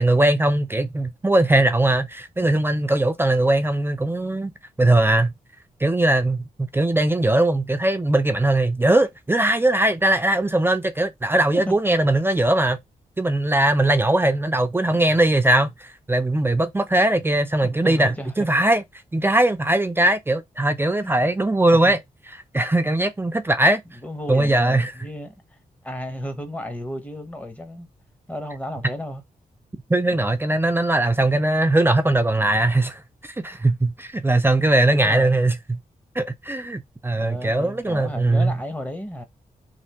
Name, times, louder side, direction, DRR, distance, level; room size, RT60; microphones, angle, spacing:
voice 1, 0.0-4.5 4.8-5.3 5.8-12.8 13.2-18.8 19.1-22.0 22.5-23.8 24.3-24.9 29.9-35.8 36.2-38.5, right 1 dB, 15° right, 0.4 m, -20 dB
voice 2, 17.6-18.3 21.0-21.3 21.8-21.9 24.0-25.4 25.8-27.9 28.3-29.2 30.1-30.2 34.9-35.4 37.2-39.2, equal, 10° left, 0.8 m, -33 dB
3.3 x 2.5 x 2.8 m
wide cardioid pair, 120°, 15 cm